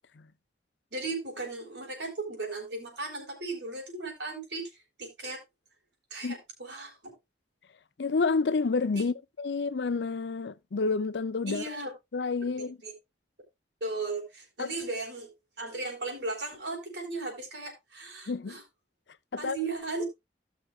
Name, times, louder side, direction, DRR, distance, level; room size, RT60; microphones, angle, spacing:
voice 1, 0.9-5.4 6.1-7.1 8.9-9.1 11.5-11.9 12.6-12.9 13.8-15.3 15.6-18.6 19.4-20.0, right 3 dB, 85° right, 4.2 m, -36 dB
voice 2, 8.0-11.6 12.1-12.8 14.6-14.7 18.3-18.6 19.3-19.6, left 4 dB, 80° left, 0.6 m, -29 dB
17.0 x 6.1 x 2.4 m
head